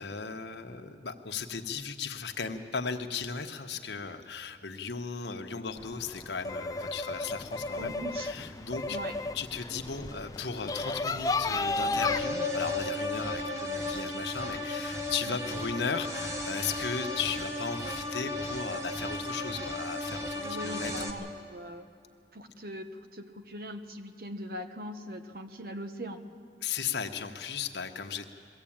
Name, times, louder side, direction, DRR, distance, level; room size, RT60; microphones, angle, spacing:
voice 1, 0.0-9.0 9.3-21.3 26.6-28.3, left 5 dB, 80° left, 5 dB, 1.2 m, -36 dB
sound 1, 5.8-12.2, left 3 dB, 20° left, 0.4 m, -33 dB
voice 2, 7.8-8.3 8.9-9.1 15.3-15.4 20.4-21.9 22.3-26.2, equal, 55° right, 7 dB, 1.2 m, -41 dB
sound 2, 11.9-21.1, left 2 dB, 15° right, 1.4 m, -34 dB
22.0 x 15.5 x 8.8 m, 2.4 s
head